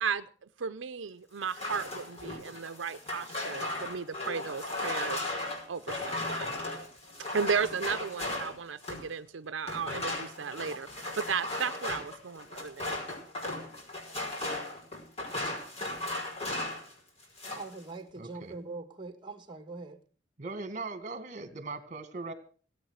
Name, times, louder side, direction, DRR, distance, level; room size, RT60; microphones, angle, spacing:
voice 1, 0.0-5.3 5.7-6.5 7.3-13.0, right 6 dB, 80° right, 11 dB, 0.6 m, -35 dB
sound 1, 1.4-9.1 9.6-16.9 17.2-17.8, left 2 dB, 35° left, 5.2 m, -36 dB
voice 2, 17.5-20.0, right 3 dB, 25° right, 8 dB, 1.6 m, -42 dB
voice 3, 18.2-18.5 20.4-22.3, right 3 dB, 40° right, 10 dB, 1.8 m, -39 dB
17.5 x 8.6 x 6.4 m, 0.42 s
head